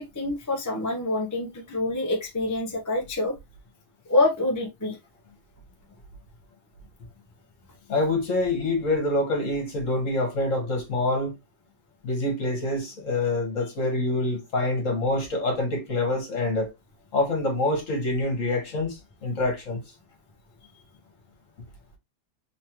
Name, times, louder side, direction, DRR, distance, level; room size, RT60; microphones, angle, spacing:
voice 1, 0.0-3.3 4.1-5.0, left 2 dB, 15° left, 0.7 m, -26 dB
voice 2, 7.9-11.3 12.0-16.7 17.1-19.8, left 2 dB, 50° left, 1.8 m, -26 dB
3.5 x 3.2 x 2.9 m
omnidirectional pair, 1.8 m